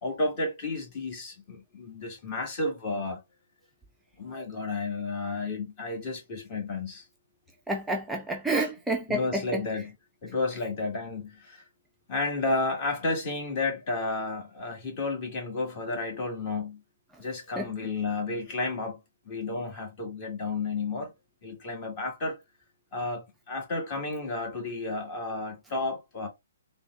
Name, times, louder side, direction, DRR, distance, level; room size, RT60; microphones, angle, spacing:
voice 1, 0.0-3.2 4.2-7.0 8.6-8.7 9.1-9.9 10.2-11.6 12.1-16.8 17.2-19.0 19.2-21.1 21.4-22.4 22.9-26.3, left 3 dB, 35° left, 1.5 m, -32 dB
voice 2, 7.7-9.8 17.1-17.2 17.6-17.7, right 2 dB, 5° right, 0.4 m, -30 dB
3.9 x 2.1 x 2.3 m
figure-of-eight pair, 130°, 0 cm